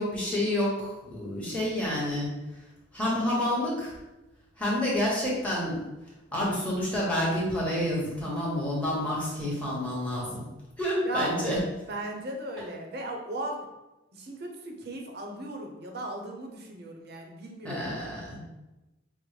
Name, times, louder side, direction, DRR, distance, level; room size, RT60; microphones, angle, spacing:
voice 1, 0.0-2.3 2.9-3.9 4.6-5.8 6.3-10.4 10.8-11.6 17.6-18.4, left 1 dB, 5° left, -6 dB, 1.0 m, -29 dB
voice 2, 11.0-11.5 11.9-13.7 14.1-17.9, right 1 dB, 50° right, 2 dB, 0.6 m, -37 dB
5.3 x 2.0 x 3.2 m, 1.0 s
head